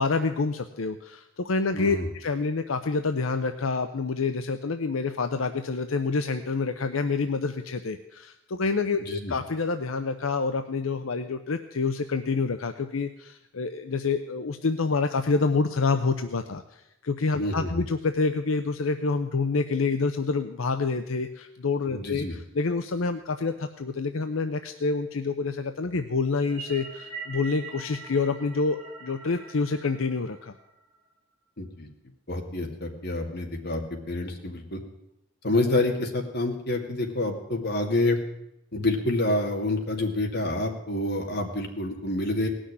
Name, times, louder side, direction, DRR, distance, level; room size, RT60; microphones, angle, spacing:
voice 1, 0.0-30.5, left 4 dB, 80° left, 8 dB, 0.7 m, -27 dB
voice 2, 1.7-2.1 9.0-9.3 17.4-17.8 21.9-22.4 31.6-31.9 32.3-34.8 35.4-38.2 38.7-42.5, left 2 dB, 55° left, 2 dB, 2.3 m, -28 dB
sound 1, 26.4-30.9, right 4 dB, 30° right, 4.7 m, -43 dB
18.5 x 6.4 x 9.7 m, 0.85 s
head